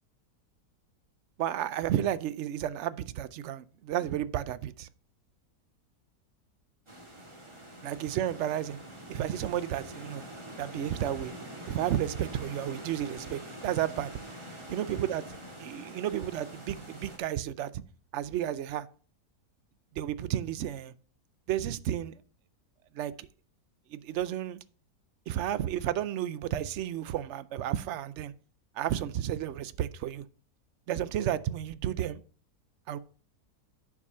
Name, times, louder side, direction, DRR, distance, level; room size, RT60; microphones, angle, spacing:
voice 1, 1.4-4.9 7.8-8.8 9.1-10.2 10.6-11.3 11.7-14.1 14.7-17.8 18.1-18.9 20.0-20.9 21.5-22.2 22.9-23.3 23.9-24.6 25.3-28.3 28.7-30.3 30.9-32.2 32.9-33.0, right 11 dB, 70° right, 0.7 m, -32 dB
sound 1, 6.9-17.2, right 1 dB, 20° right, 1.7 m, -45 dB
9.6 x 4.8 x 5.5 m
omnidirectional pair, 1.7 m